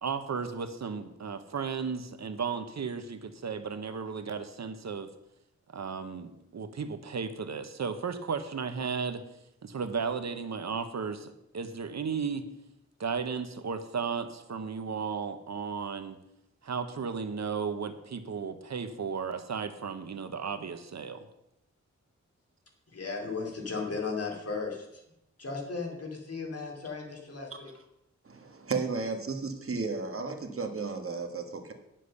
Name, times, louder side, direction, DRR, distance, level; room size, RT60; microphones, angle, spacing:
voice 1, 0.0-5.1 5.7-9.2 9.6-12.4 13.0-16.2 16.6-21.2, right 5 dB, 65° right, 9 dB, 1.0 m, -34 dB
voice 2, 22.9-25.0 25.4-27.7, left 4 dB, 55° left, 1 dB, 2.7 m, -36 dB
voice 3, 28.2-31.7, right 4 dB, 50° right, 5 dB, 1.5 m, -34 dB
10.0 x 7.6 x 6.6 m, 0.83 s
wide cardioid pair, 135°, 29 cm